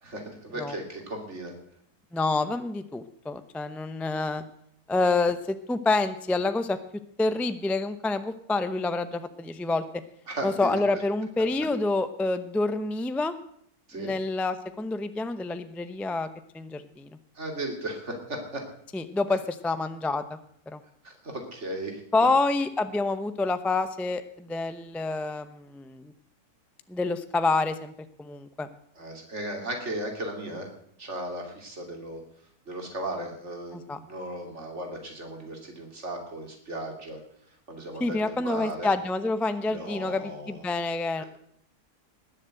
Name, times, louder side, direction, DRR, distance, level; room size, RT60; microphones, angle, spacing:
voice 1, 0.0-1.5 10.3-10.8 13.9-14.1 17.4-18.6 21.0-22.0 29.0-30.7 31.0-32.2 32.7-37.2 37.7-38.9 39.7-40.6 41.2-41.3, right 1 dB, 45° right, 2 dB, 3.3 m, -36 dB
voice 2, 2.1-4.4 4.9-6.8 7.2-9.8 10.4-13.3 14.0-16.3 16.5-17.2 18.9-20.4 20.7-20.8 22.1-26.1 26.9-27.9 28.2-28.7 33.7-34.0 38.0-41.2, left 3 dB, ahead, 10 dB, 0.3 m, -27 dB
19.5 x 7.4 x 7.8 m, 0.68 s
omnidirectional pair, 1.6 m